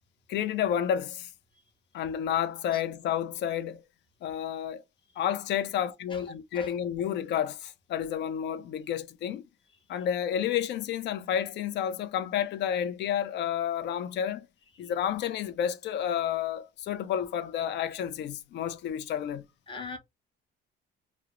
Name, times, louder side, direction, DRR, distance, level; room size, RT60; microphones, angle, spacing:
voice 1, 0.3-1.3 1.9-3.8 4.2-4.8 5.2-9.4 9.9-14.5 14.8-19.4, left 9 dB, 60° left, 0.4 m, -30 dB
voice 2, 19.7-20.0, left 4 dB, 25° left, 0.7 m, -39 dB
2.3 x 2.0 x 2.9 m
cardioid pair, 110°, 21 cm